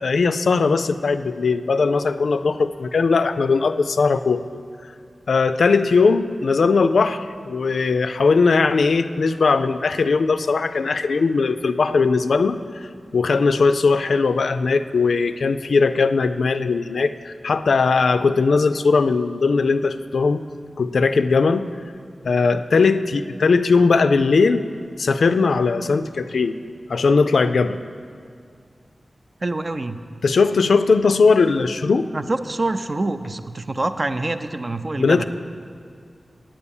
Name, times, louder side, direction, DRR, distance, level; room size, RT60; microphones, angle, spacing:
voice 1, 0.0-4.4 5.3-12.9 13.1-20.4 20.8-21.7 22.2-24.7 25.0-26.6 26.9-27.8 30.2-32.1 35.0-35.3, left 4 dB, 90° left, 10 dB, 0.3 m, -19 dB
voice 2, 29.4-30.0 32.1-35.3, right 2 dB, 40° right, 9 dB, 0.4 m, -26 dB
8.9 x 8.3 x 7.0 m, 2.2 s
wide cardioid pair, 85°, 0 cm